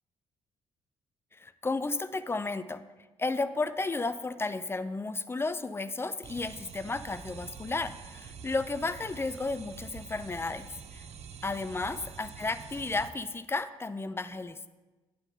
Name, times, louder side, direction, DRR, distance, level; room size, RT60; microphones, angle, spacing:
voice 1, 1.3-2.8 3.2-11.1 11.4-14.7, left 3 dB, 15° left, 13 dB, 0.5 m, -33 dB
sound 1, 6.2-13.1, right 6 dB, 50° right, 0.6 m, -46 dB
9.0 x 3.8 x 6.9 m, 1.2 s
figure-of-eight pair, 40°, 14 cm